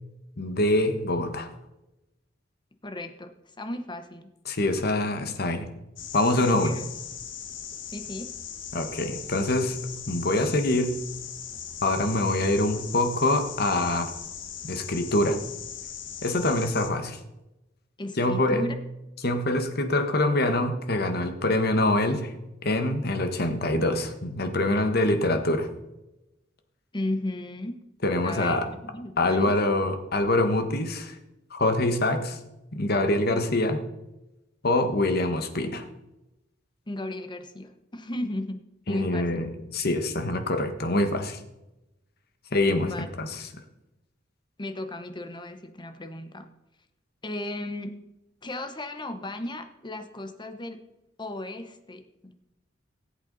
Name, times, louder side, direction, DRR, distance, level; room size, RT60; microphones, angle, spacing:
voice 1, 0.4-1.5 4.5-5.7 6.1-6.8 8.7-9.8 10.1-10.9 11.8-14.1 14.6-15.4 16.2-17.2 18.2-18.6 19.2-22.3 22.6-25.7 28.0-28.7 29.2-31.1 31.5-32.4 32.7-33.8 34.6-35.8 38.9-39.5 39.7-41.4 42.5-43.5, left 2 dB, 55° left, 7 dB, 1.4 m, -25 dB
voice 2, 2.8-3.3 3.6-4.3 6.5-6.8 7.9-8.3 18.0-18.7 26.9-27.8 28.2-29.5 36.9-38.6 38.9-39.3 42.8-43.1 44.6-46.5 47.2-48.0 48.4-50.8 51.2-52.3, left 1 dB, 25° left, 8 dB, 1.0 m, -35 dB
sound 1, 6.0-16.9, left 8 dB, 85° left, 1.5 m, -39 dB
18.5 x 8.1 x 4.1 m, 0.95 s
head